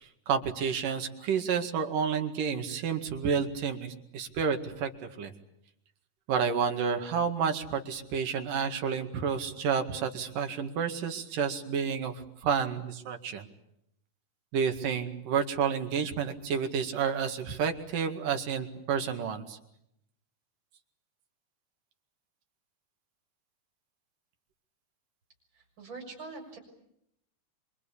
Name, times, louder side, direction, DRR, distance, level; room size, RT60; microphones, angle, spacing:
voice 1, 0.3-4.9 5.2-5.3 6.3-13.5 14.5-19.6, right 6 dB, 90° right, 5 dB, 3.7 m, -30 dB
voice 2, 25.5-26.6, right 3 dB, 35° right, 3 dB, 7.5 m, -44 dB
26.5 x 24.5 x 8.6 m, 0.78 s
omnidirectional pair, 3.7 m